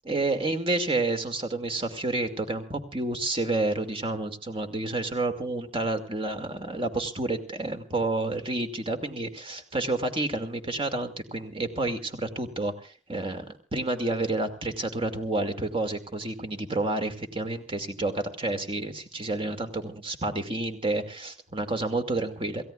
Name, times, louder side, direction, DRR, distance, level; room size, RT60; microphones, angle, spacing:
voice 1, 0.1-22.6, right 2 dB, 30° right, 7 dB, 2.4 m, -29 dB
28.0 x 16.5 x 2.5 m, 0.35 s
head